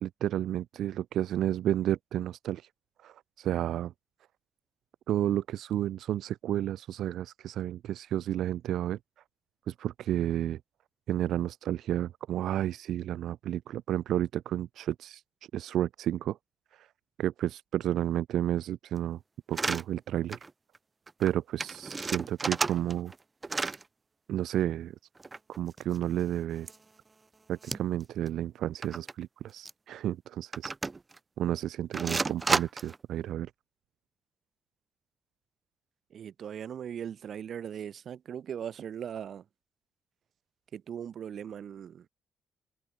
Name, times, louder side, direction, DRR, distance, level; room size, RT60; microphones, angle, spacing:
voice 1, 0.0-2.7 3.0-3.9 5.1-9.0 9.7-10.6 11.1-15.2 15.5-16.4 16.7-16.9 17.2-19.2 19.5-20.4 21.2-23.1 24.3-24.9 25.6-26.7 27.5-30.7 31.4-33.5, right 12 dB, 75° right, 1.0 m, -31 dB
sound 1, 19.5-19.8 20.3-20.5 20.8-20.9 21.1-21.3 21.6-23.2 23.4-23.8 25.2-26.2 26.7-26.8 27.6-28.0 28.3-28.4 28.8-29.1 29.7-29.8 30.5-31.2 31.9-33.0, right 3 dB, 25° right, 0.6 m, -32 dB
voice 2, 36.1-39.5 40.7-42.1, right 8 dB, 60° right, 3.8 m, -39 dB
cardioid pair, 90°, 0 cm